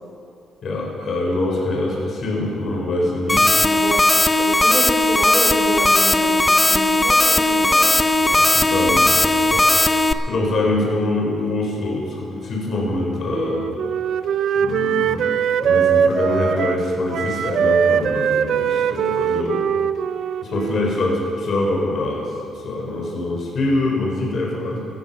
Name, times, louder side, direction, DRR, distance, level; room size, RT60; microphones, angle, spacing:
voice 1, 0.6-3.5 8.2-9.8 10.3-13.7 14.5-15.4 15.6-19.6 20.4-24.8, left 2 dB, 55° left, -2 dB, 4.4 m, -24 dB
sound 1, 3.3-10.1, left 2 dB, 15° left, 0.6 m, -17 dB
voice 2, 4.4-8.0 8.7-8.9 19.4-19.6, right 1 dB, 25° right, 1 dB, 3.0 m, -29 dB
Wind instrument woodwind instrument, 13.3-16.9 17.1-21.0, right 8 dB, 70° right, 0.5 m, -21 dB
15.0 x 13.5 x 5.5 m, 2.6 s
cardioid pair, 90°, 0 cm